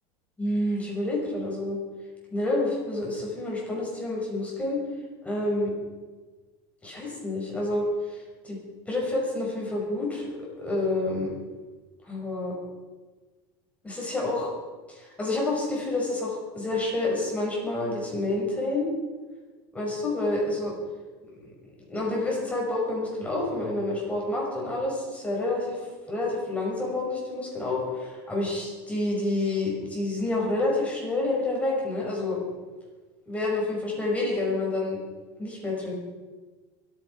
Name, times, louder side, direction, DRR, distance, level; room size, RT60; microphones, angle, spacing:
voice 1, 0.4-1.8 2.3-4.8 5.2-5.7 6.8-8.6 8.9-10.3 10.6-11.3 12.0-12.5 13.8-14.5 14.9-18.9 19.7-20.7 21.4-21.5 21.9-32.4 33.3-35.0 35.4-35.9, left 2 dB, 10° left, -3 dB, 5.9 m, -28 dB
25.5 x 9.9 x 4.9 m, 1.3 s
supercardioid pair, 130°, 11 cm